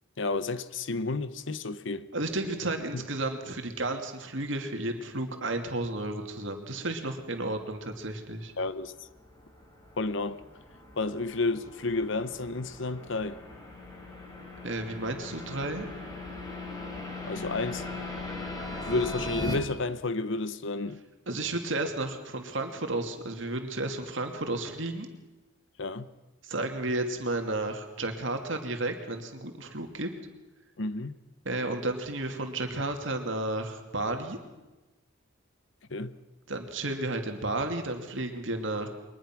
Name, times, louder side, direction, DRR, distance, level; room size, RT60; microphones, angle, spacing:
voice 1, 0.2-2.1 2.9-3.1 8.6-9.1 10.0-10.4 11.0-13.4 17.2-17.9 18.8-21.0 25.8-26.1 30.8-31.2 35.9-36.1, left 3 dB, 60° left, 0.9 m, -31 dB
voice 2, 2.1-8.5 14.6-15.9 21.3-25.1 26.4-30.1 31.4-34.4 36.5-38.9, right 2 dB, 60° right, 2.5 m, -32 dB
sound 1, 8.3-19.5, left 2 dB, 20° left, 3.8 m, -40 dB
23.0 x 20.5 x 6.1 m
head